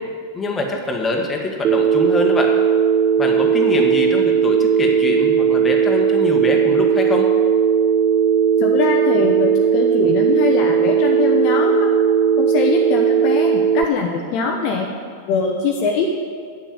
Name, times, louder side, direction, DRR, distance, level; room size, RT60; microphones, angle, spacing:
voice 1, 0.3-2.5 3.2-7.3, left 2 dB, 15° left, 1 dB, 1.5 m, -24 dB
Telephone, 1.6-13.8, right 7 dB, 30° right, 0.4 m, -17 dB
voice 2, 8.6-11.9 12.4-14.9 15.3-16.1, left 5 dB, 45° left, 1 dB, 0.9 m, -22 dB
8.7 x 6.9 x 7.5 m, 2.1 s
figure-of-eight pair, 90°, 0 cm